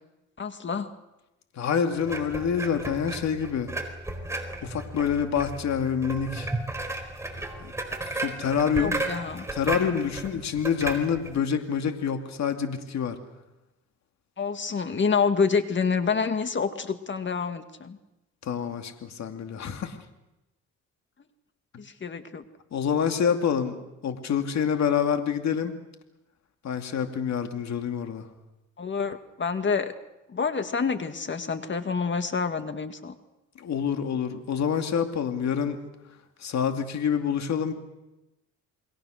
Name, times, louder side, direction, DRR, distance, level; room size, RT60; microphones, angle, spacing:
voice 1, 0.4-0.9 8.8-9.4 14.4-18.0 21.8-22.4 28.8-29.9 30.3-33.1, left 5 dB, 40° left, 9 dB, 1.9 m, -27 dB
voice 2, 1.6-3.7 4.6-6.5 8.1-9.0 9.5-13.2 18.4-20.0 22.7-23.8 24.0-25.7 26.6-28.3 33.6-35.8 36.4-37.7, left 7 dB, 65° left, 6 dB, 2.5 m, -27 dB
sound 1, 2.1-11.4, right 2 dB, 10° right, 4.5 m, -34 dB
28.5 x 22.0 x 6.5 m, 0.96 s
cardioid pair, 90°, 30 cm